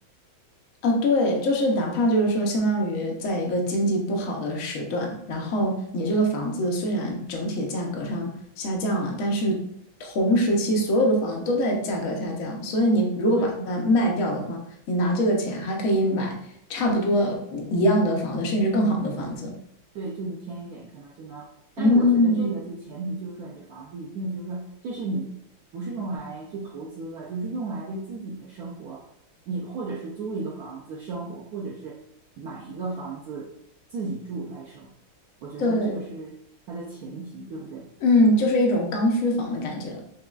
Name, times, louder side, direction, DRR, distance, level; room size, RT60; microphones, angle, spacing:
voice 1, 0.8-9.6 10.0-14.6 14.9-16.4 16.7-19.5 21.8-22.5 35.6-36.0 38.0-40.0, equal, 65° left, 0 dB, 0.8 m, -23 dB
voice 2, 19.9-21.5 21.8-25.4 25.7-29.1 29.5-32.0 32.4-33.5 33.9-34.9 35.4-36.3 36.7-37.9, right 3 dB, 85° right, -3 dB, 0.8 m, -34 dB
6.1 x 2.3 x 2.3 m, 0.75 s
omnidirectional pair, 2.2 m